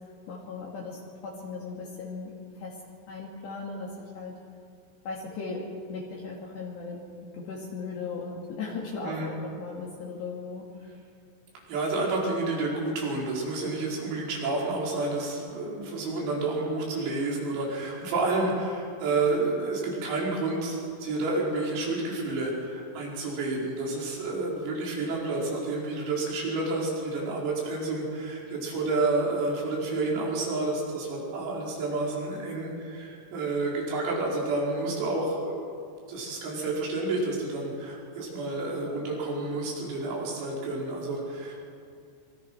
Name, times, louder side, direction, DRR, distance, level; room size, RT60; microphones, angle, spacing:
voice 1, 0.3-2.3 2.6-2.8 3.1-4.3 5.0-10.9, left 4 dB, 60° left, -3 dB, 4.3 m, -37 dB
voice 2, 11.7-35.6 36.1-41.6, right 2 dB, 85° right, -3 dB, 7.7 m, -30 dB
26.5 x 24.5 x 6.2 m, 2.4 s
omnidirectional pair, 5.9 m